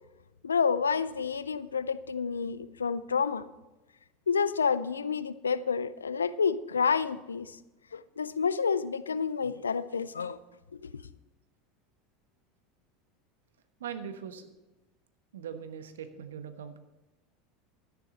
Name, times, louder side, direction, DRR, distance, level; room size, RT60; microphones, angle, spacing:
voice 1, 0.4-3.4 4.3-7.6 7.9-10.4 10.8-10.9, left 6 dB, 85° left, 0.4 m, -29 dB
voice 2, 13.8-14.5 15.3-16.8, right 8 dB, 80° right, 1.1 m, -40 dB
13.5 x 9.9 x 4.1 m
hypercardioid pair, 80°, 0 cm